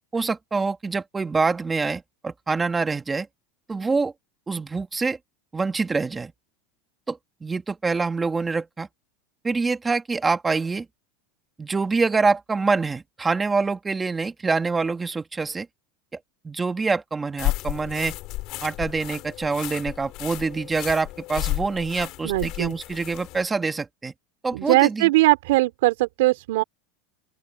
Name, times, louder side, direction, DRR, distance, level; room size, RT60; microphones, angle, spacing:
voice 1, 0.1-3.3 3.7-4.1 4.5-5.2 5.5-6.3 7.1-8.9 9.4-10.8 11.6-15.7 16.4-18.1 18.6-24.1 24.4-25.1, right 4 dB, 15° right, 1.6 m, -25 dB
sound 1, 17.4-23.5, left 19 dB, 50° left, 3.5 m, -32 dB
voice 2, 22.2-22.7 24.5-26.6, right 19 dB, 75° right, 4.3 m, -20 dB
open air
supercardioid pair, 140°, 0 cm